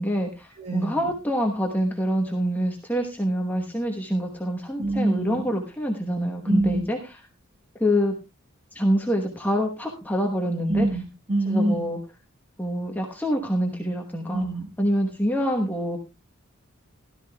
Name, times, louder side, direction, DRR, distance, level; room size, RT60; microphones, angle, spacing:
voice 1, 0.0-7.0 7.8-8.1 8.7-10.9 11.5-12.0 12.6-14.5 14.8-16.0, equal, 10° left, 1 dB, 1.1 m, -26 dB
voice 2, 0.5-1.1 4.8-5.4 6.4-6.8 10.7-11.8 14.3-14.7, right 1 dB, 30° right, 1 dB, 4.6 m, -25 dB
16.5 x 12.5 x 2.2 m, 0.27 s
head